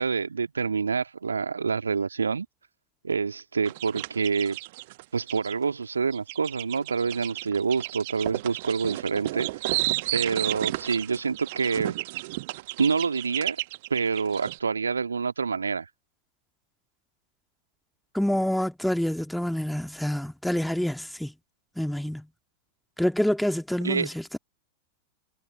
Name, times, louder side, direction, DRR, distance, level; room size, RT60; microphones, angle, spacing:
voice 1, 0.0-2.5 3.0-4.6 5.1-9.9 10.1-11.9 12.8-13.6 13.9-15.9 23.8-24.1, right 5 dB, 75° right, 2.1 m, -27 dB
sound 1, 3.7-5.5 6.1-14.6, right 20 dB, 50° right, 1.1 m, -32 dB
voice 2, 18.1-21.3 21.8-22.3 23.0-24.4, equal, ahead, 2.0 m, -27 dB
figure-of-eight pair, 90°, 0 cm